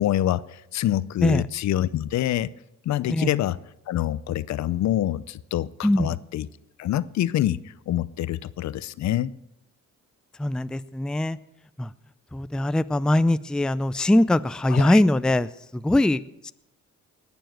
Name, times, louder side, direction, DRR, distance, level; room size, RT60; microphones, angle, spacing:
voice 1, 0.0-2.5 2.9-3.6 3.9-6.5 6.8-9.3 14.7-15.0, left 12 dB, 65° left, 18 dB, 0.6 m, -26 dB
voice 2, 5.8-6.2 10.4-11.4 11.8-11.9 12.3-16.5, left 1 dB, 5° left, 14 dB, 0.4 m, -22 dB
19.5 x 7.0 x 7.7 m, 0.86 s
cardioid pair, 90°, 30 cm